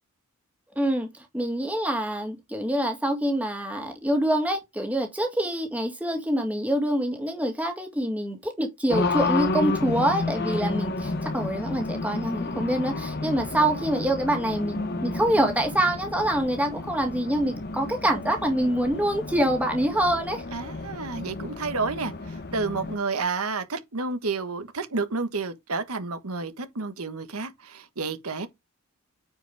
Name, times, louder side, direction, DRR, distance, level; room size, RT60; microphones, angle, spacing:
voice 1, 0.8-1.1 1.3-20.4, right 1 dB, 5° right, 2.0 m, -25 dB
Race car auto racing, 8.9-23.0, left 3 dB, 45° left, 1.0 m, -31 dB
voice 2, 20.5-28.5, right 4 dB, 80° right, 1.3 m, -30 dB
9.3 x 5.0 x 3.4 m
head